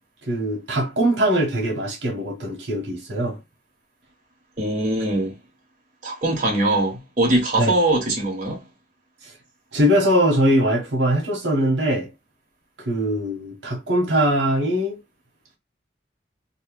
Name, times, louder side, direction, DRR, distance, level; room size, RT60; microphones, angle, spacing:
voice 1, 0.3-3.4 7.6-7.7 9.7-12.1 12.8-15.0, equal, 85° right, 1.0 m, -21 dB
voice 2, 4.6-5.3 6.0-8.6, right 1 dB, 45° right, 1.2 m, -22 dB
2.9 x 2.1 x 3.0 m
head